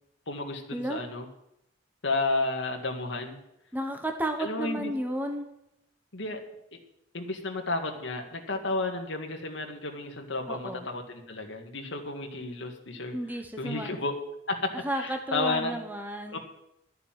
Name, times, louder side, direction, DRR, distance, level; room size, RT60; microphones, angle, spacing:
voice 1, 0.3-1.3 2.0-3.4 4.4-4.9 6.1-6.4 6.7-6.8 7.1-13.2 13.6-15.8 16.3-16.4, left 2 dB, 75° left, 2 dB, 1.9 m, -32 dB
voice 2, 3.7-5.5 10.5-10.9 13.1-14.0 14.8-16.4, right 1 dB, 10° right, 4 dB, 1.1 m, -32 dB
12.5 x 6.8 x 9.0 m, 0.82 s
head